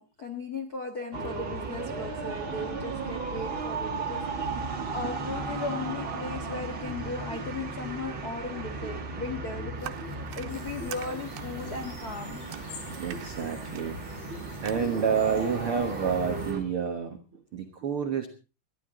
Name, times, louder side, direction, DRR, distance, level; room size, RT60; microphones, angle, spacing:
voice 1, 0.0-12.4, left 3 dB, 90° left, 4 dB, 0.8 m, -37 dB
sound 1, 1.1-16.6, right 3 dB, 35° right, 2.5 m, -35 dB
sound 2, 9.8-14.7, right 13 dB, 90° right, 3.1 m, -46 dB
sound 3, 10.5-16.5, left 5 dB, 70° left, 4.9 m, -50 dB
voice 2, 12.9-18.3, right 6 dB, 70° right, 6 dB, 1.3 m, -30 dB
21.5 x 13.5 x 3.8 m, 0.33 s
omnidirectional pair, 4.6 m